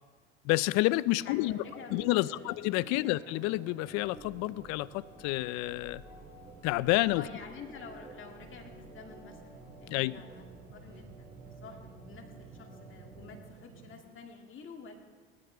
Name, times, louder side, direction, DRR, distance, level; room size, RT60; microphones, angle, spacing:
voice 1, 0.4-1.6 1.9-6.0 6.6-7.3 9.9-10.2, left 19 dB, 60° left, 19 dB, 0.5 m, -29 dB
sound 1, 1.1-14.0, right 5 dB, 70° right, 3.2 m, -56 dB
voice 2, 1.2-2.6 2.9-3.1 7.1-10.5 10.7-14.9, left 5 dB, 40° left, 3 dB, 2.3 m, -49 dB
Organ, 1.3-13.5, right 1 dB, 15° right, 3.8 m, -53 dB
sound 2, 4.1-11.6, right 3 dB, 30° right, 2.0 m, -58 dB
19.0 x 13.5 x 3.4 m, 1.5 s
hypercardioid pair, 75°, 30 cm